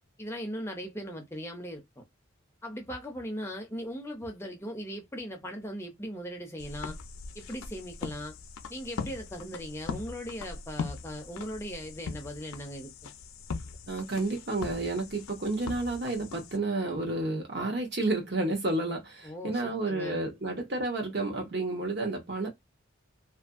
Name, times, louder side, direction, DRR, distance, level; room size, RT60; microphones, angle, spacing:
voice 1, 0.2-2.0 2.6-7.0 7.3-8.4 8.7-13.1 19.2-20.2, equal, 10° left, 0.5 m, -39 dB
sound 1, 6.6-16.6, left 4 dB, 90° left, 0.5 m, -41 dB
voice 2, 13.9-22.5, right 2 dB, 50° right, 0.8 m, -31 dB
2.5 x 2.5 x 2.4 m
head